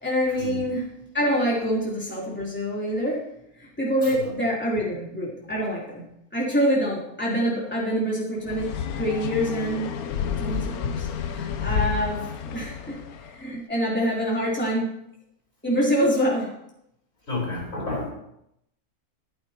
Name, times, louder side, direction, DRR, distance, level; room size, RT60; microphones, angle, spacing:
voice 1, 0.0-0.9 1.1-3.3 3.6-6.0 6.3-10.0 10.2-15.0 15.6-16.6, equal, 5° left, -6 dB, 3.4 m, -26 dB
sound 1, 8.5-13.4, left 7 dB, 80° left, 1.2 m, -30 dB
voice 2, 17.3-18.1, left 2 dB, 65° left, -3 dB, 4.9 m, -31 dB
14.5 x 11.5 x 2.9 m, 0.77 s
omnidirectional pair, 1.5 m